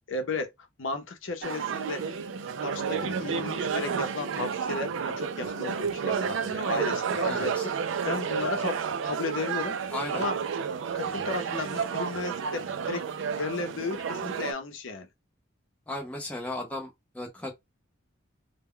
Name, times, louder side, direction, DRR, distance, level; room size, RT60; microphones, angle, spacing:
voice 1, 0.1-0.5 0.8-2.2 2.6-10.4 10.9-13.0 13.3-15.1, left 3 dB, 75° left, 0.6 m, -34 dB
sound 1, 1.4-14.5, right 6 dB, 70° right, 0.3 m, -31 dB
voice 2, 7.3-7.7 9.9-10.2 15.9-17.5, left 1 dB, 5° left, 0.6 m, -36 dB
2.1 x 2.1 x 3.6 m
head